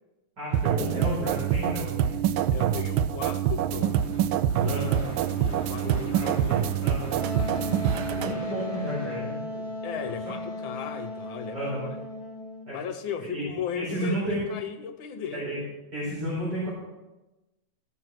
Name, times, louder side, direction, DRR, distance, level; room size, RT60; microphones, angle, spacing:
voice 1, 0.4-2.1 4.6-5.0 5.8-7.1 7.9-9.4 10.3-10.4 10.7-10.8 11.5-11.8 12.7-12.8 13.2-13.5 13.7-14.4 15.3-15.6 15.9-16.7, right 1 dB, 55° right, -8 dB, 5.4 m, -32 dB
sound 1, 0.5-8.3, right 9 dB, 80° right, 1.4 m, -26 dB
voice 2, 2.5-4.0 4.6-6.4 9.8-12.0 12.7-15.4, left 8 dB, 75° left, 6 dB, 1.5 m, -36 dB
Gunshot gunfire / Fireworks, 3.8-10.1, left 1 dB, 5° left, 3.9 m, -43 dB
Wind instrument woodwind instrument, 7.1-12.7, left 2 dB, 50° left, 1.9 m, -36 dB
16.0 x 6.1 x 6.4 m, 1.1 s
omnidirectional pair, 2.3 m